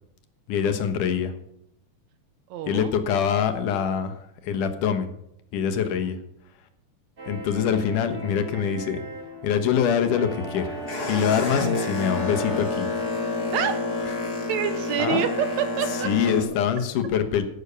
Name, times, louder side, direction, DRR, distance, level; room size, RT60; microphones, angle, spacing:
voice 1, 0.5-1.3 2.7-5.1 5.5-6.2 7.3-9.0 9.4-10.8 11.1-12.9 14.3-14.4 15.0-15.2 16.0-17.4, left 7 dB, 75° left, 8 dB, 2.7 m, -24 dB
voice 2, 2.5-2.9 6.0-6.1 13.5-13.8 14.5-15.3 15.6-16.1, right 9 dB, 75° right, 10 dB, 1.9 m, -27 dB
sound 1, 7.2-12.6, right 2 dB, 35° right, 1.9 m, -38 dB
Boat Water vehicle, 10.2-16.4, left 3 dB, 30° left, 2.6 m, -29 dB
11.5 x 8.1 x 6.8 m, 0.77 s
omnidirectional pair, 3.7 m